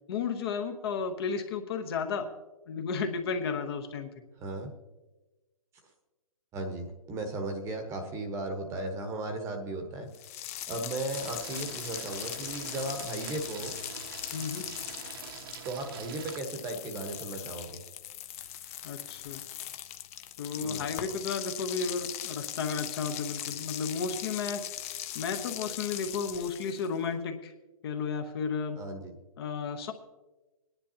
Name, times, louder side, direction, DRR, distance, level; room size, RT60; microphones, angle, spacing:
voice 1, 0.1-2.3 2.7-4.1 14.3-14.7 18.8-19.4 20.4-24.6 25.1-27.5 27.8-28.8 29.4-29.9, left 5 dB, 40° left, 6 dB, 1.1 m, -33 dB
voice 2, 4.4-4.7 6.5-10.1 10.7-13.7 15.6-17.8 20.6-20.8 28.8-29.2, right 2 dB, 15° right, 5 dB, 1.1 m, -36 dB
sound 1, 10.1-27.0, left 12 dB, 25° left, 0.5 m, -40 dB
sound 2, 11.1-16.4, right 7 dB, 40° right, 1.0 m, -44 dB
22.0 x 10.5 x 2.8 m, 1.1 s
hypercardioid pair, 150°, 19 cm